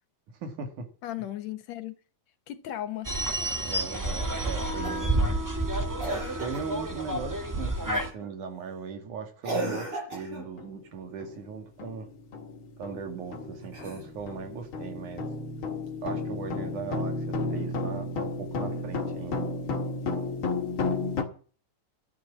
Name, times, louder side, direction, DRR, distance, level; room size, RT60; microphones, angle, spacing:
voice 1, 0.4-0.9 3.6-5.5 6.1-12.1 12.8-15.3 16.0-19.5, right 5 dB, 80° right, 3.7 m, -38 dB
voice 2, 1.0-2.0 2.5-3.6 4.8-4.9, left 13 dB, 70° left, 2.0 m, -37 dB
sound 1, 3.0-8.1, right 1 dB, 20° right, 0.5 m, -29 dB
Cough, 4.8-5.2 6.0-6.8 7.9-8.3 9.4-10.5 13.6-14.4 15.9-16.0, right 2 dB, 45° right, 7.6 m, -35 dB
sound 2, 10.6-10.7 11.2-11.4 11.8-21.2, left 3 dB, 45° left, 2.4 m, -33 dB
13.5 x 9.2 x 7.3 m
omnidirectional pair, 3.5 m